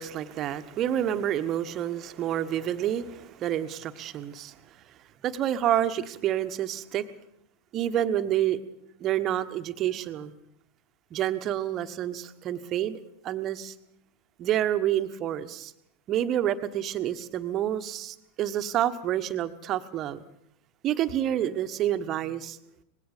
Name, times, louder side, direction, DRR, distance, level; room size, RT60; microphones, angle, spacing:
voice 1, 0.0-4.6 5.2-7.0 7.7-8.6 9.0-10.3 11.1-13.0 13.2-13.7 14.4-15.7 16.1-20.2 20.8-22.6, right 11 dB, 30° right, 10 dB, 1.3 m, -28 dB
25.5 x 20.5 x 5.2 m, 0.77 s
figure-of-eight pair, 90°, 0 cm